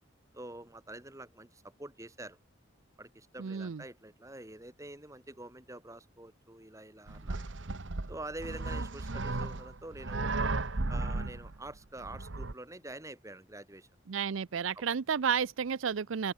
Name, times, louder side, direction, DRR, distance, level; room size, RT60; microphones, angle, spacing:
voice 1, 0.3-2.4 3.0-7.5 8.1-10.3 10.9-13.9 14.7-14.8, right 2 dB, 15° right, 2.5 m, -46 dB
voice 2, 3.4-3.8 14.1-16.3, right 7 dB, 85° right, 0.5 m, -32 dB
sound 1, 7.1-12.5, right 3 dB, 70° right, 1.2 m, -35 dB
open air
head